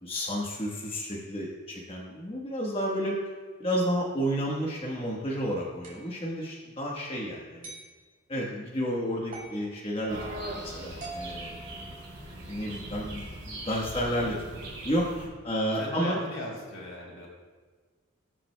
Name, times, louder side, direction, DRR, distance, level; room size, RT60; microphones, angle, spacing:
voice 1, 0.0-3.1 3.6-7.7 8.3-11.6 12.5-14.3 14.8-16.2, equal, 25° left, -3 dB, 1.1 m, -31 dB
sound 1, 5.8-6.1 7.6-7.9 9.3-9.6 11.0-12.4, right 2 dB, 45° right, 3.1 m, -43 dB
sound 2, 10.1-15.3, right 1 dB, 60° right, 3.0 m, -40 dB
voice 2, 15.7-17.3, left 1 dB, 80° left, -3 dB, 3.1 m, -37 dB
20.0 x 7.4 x 2.2 m, 1.4 s
head